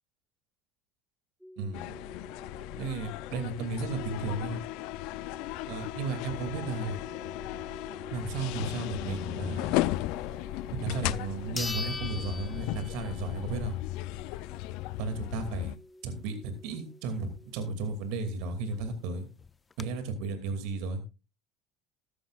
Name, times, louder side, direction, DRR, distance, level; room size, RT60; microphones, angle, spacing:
sound 1, 1.4-18.0, equal, ahead, 1.1 m, -49 dB
voice 1, 1.6-2.0 2.8-4.6 5.7-7.0 8.1-9.9 10.8-13.8 15.0-15.7 16.0-19.3 19.8-21.0, right 3 dB, 70° right, 8 dB, 2.5 m, -34 dB
sound 2, 1.7-15.8, left 18 dB, 70° left, 0.4 m, -36 dB
sound 3, 10.7-10.8 11.6-13.3 13.7-13.8 18.4-18.5 18.7-18.8 19.4-19.8, left 4 dB, 25° left, 0.5 m, -38 dB
14.0 x 11.5 x 2.5 m, 0.28 s
supercardioid pair, 90°, 0 cm